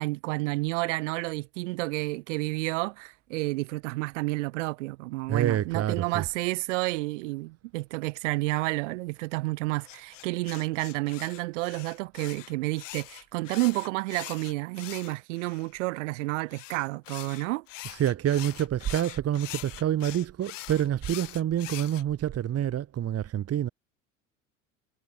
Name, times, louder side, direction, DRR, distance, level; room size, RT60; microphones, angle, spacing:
voice 1, 0.0-17.6, right 22 dB, 65° right, 4.2 m, -30 dB
voice 2, 5.3-6.2 17.9-23.7, right 11 dB, 40° right, 2.4 m, -27 dB
sound 1, 9.8-15.7 16.5-22.0, left 17 dB, 70° left, 5.5 m, -43 dB
hypercardioid pair, 75°, 39 cm